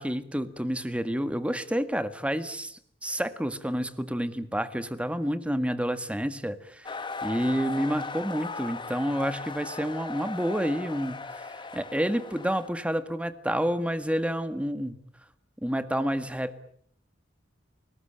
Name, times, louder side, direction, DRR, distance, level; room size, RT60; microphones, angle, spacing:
voice 1, 0.0-15.0 15.6-16.6, equal, 5° right, 12 dB, 1.7 m, -29 dB
sound 1, 6.8-12.7, left 3 dB, 25° left, 1.3 m, -38 dB
28.5 x 19.5 x 8.8 m, 0.64 s
head